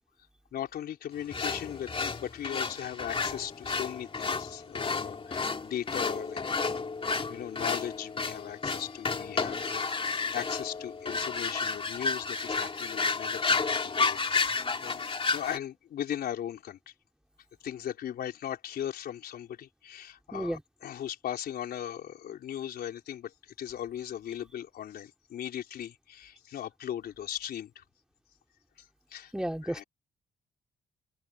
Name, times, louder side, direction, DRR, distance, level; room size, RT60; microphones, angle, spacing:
voice 1, 0.5-6.4 7.3-16.9 17.6-27.8 28.8-29.3 29.6-29.8, left 10 dB, 75° left, 4.1 m, -38 dB
sound 1, 1.3-15.6, left 4 dB, 35° left, 2.8 m, -31 dB
voice 2, 29.3-29.8, equal, 5° right, 3.5 m, -32 dB
open air
cardioid pair, 80°, 16 cm